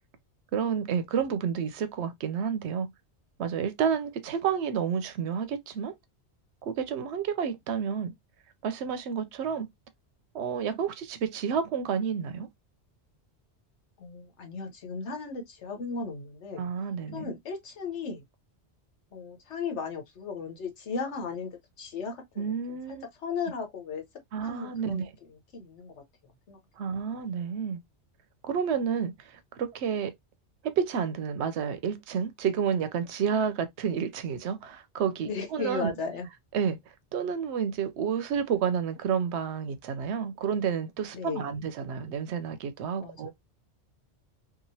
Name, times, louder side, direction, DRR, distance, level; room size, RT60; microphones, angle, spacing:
voice 1, 0.5-2.9 3.4-5.9 6.6-8.1 8.6-9.7 10.3-12.5 16.6-17.3 22.4-23.1 24.3-25.0 26.8-27.8 28.4-30.1 30.6-35.9 36.5-36.8 37.1-43.3, right 7 dB, 75° right, 0.8 m, -30 dB
voice 2, 14.0-16.7 17.1-18.2 19.1-22.8 23.2-24.0 24.4-26.0 26.5-26.6 35.3-36.3 41.1-41.6 43.0-43.3, left 4 dB, 85° left, 1.2 m, -36 dB
2.9 x 2.4 x 2.6 m
omnidirectional pair, 1.2 m